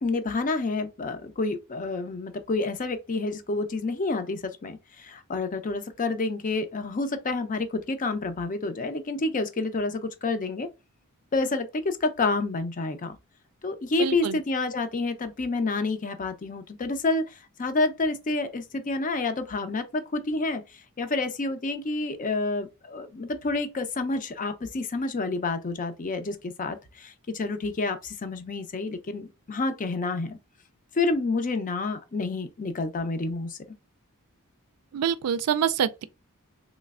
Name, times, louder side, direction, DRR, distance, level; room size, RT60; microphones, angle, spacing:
voice 1, 0.0-10.7 11.3-13.2 13.6-30.4 30.9-33.6, left 3 dB, 35° left, 0.5 m, -29 dB
voice 2, 14.0-14.4 34.9-36.0, right 8 dB, 85° right, 0.4 m, -26 dB
3.2 x 3.1 x 2.3 m
head